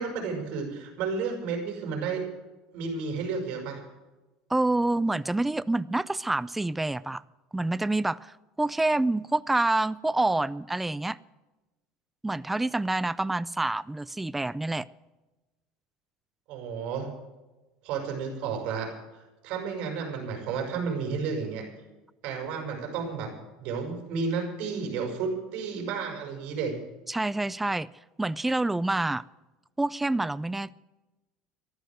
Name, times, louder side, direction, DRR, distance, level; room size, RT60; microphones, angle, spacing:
voice 1, 0.0-2.2 2.7-3.8 16.5-17.1 17.8-21.7 22.2-23.3 23.6-26.7, right 5 dB, 60° right, 3 dB, 6.2 m, -32 dB
voice 2, 4.5-7.2 7.5-11.2 12.2-14.9 27.1-27.9 28.2-29.2 29.8-30.7, right 2 dB, 5° right, 19 dB, 0.4 m, -27 dB
14.5 x 11.5 x 7.8 m, 1.1 s
cardioid pair, 145°, 2 cm